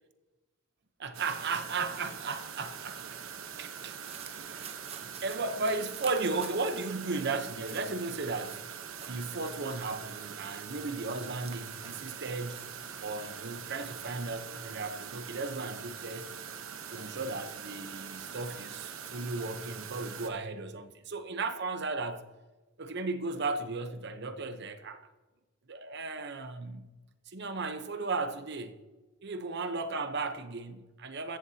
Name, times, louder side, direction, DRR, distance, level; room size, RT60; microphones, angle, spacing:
voice 1, 1.0-3.2 3.6-4.0 4.4-4.8 5.0-8.6 9.0-12.6 13.0-16.3 16.9-22.2 22.8-25.1 25.7-26.9 27.3-28.7 29.2-31.4, right 3 dB, 55° right, 0.9 m, -35 dB
sound 1, 1.1-20.3, right 7 dB, 90° right, 1.1 m, -43 dB
sound 2, 3.9-12.1 12.5-13.9, right 7 dB, 30° right, 0.9 m, -51 dB
14.5 x 14.5 x 2.9 m
head